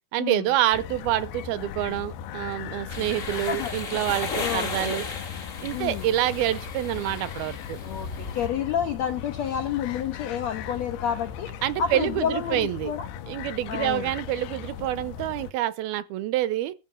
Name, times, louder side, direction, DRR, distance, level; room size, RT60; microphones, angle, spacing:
voice 1, 0.1-5.1 5.6-7.8 11.6-12.9 13.3-16.7, right 13 dB, 80° right, 2.6 m, -27 dB
sound 1, 0.7-15.5, left 9 dB, 90° left, 3.2 m, -38 dB
sound 2, 2.9-8.5, left 4 dB, 55° left, 0.8 m, -35 dB
voice 2, 4.4-5.0 5.7-6.1 7.8-11.5 11.8-13.1 13.7-14.1, left 8 dB, 70° left, 1.6 m, -29 dB
14.0 x 7.4 x 6.3 m
omnidirectional pair, 4.6 m